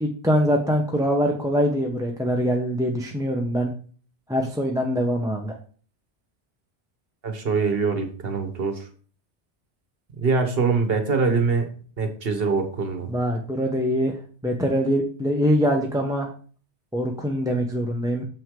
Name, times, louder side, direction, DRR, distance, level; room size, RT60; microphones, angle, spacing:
voice 1, 0.0-3.7 4.3-5.6 13.1-16.3 16.9-18.2, equal, 5° right, 1 dB, 0.7 m, -23 dB
voice 2, 7.2-8.9 10.2-11.7 12.0-13.1, right 4 dB, 60° right, 7 dB, 1.2 m, -23 dB
7.0 x 6.0 x 3.7 m, 0.42 s
omnidirectional pair, 1.1 m